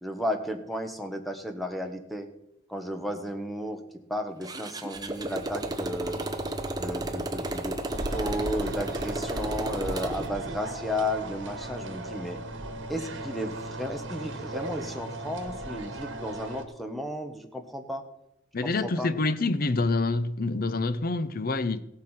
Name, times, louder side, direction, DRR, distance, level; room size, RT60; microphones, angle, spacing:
voice 1, 0.0-2.3 2.7-3.8 4.1-6.2 6.8-12.4 12.9-18.0 18.6-19.1, equal, ahead, 1.3 m, -33 dB
Motorcycle, 4.4-10.3, right 1 dB, 20° right, 1.0 m, -33 dB
sound 1, 4.9-16.0, equal, 55° right, 2.8 m, -45 dB
sound 2, 7.9-16.6, right 2 dB, 80° right, 1.6 m, -37 dB
voice 2, 18.5-21.8, left 3 dB, 50° left, 0.7 m, -27 dB
16.5 x 7.5 x 5.8 m
head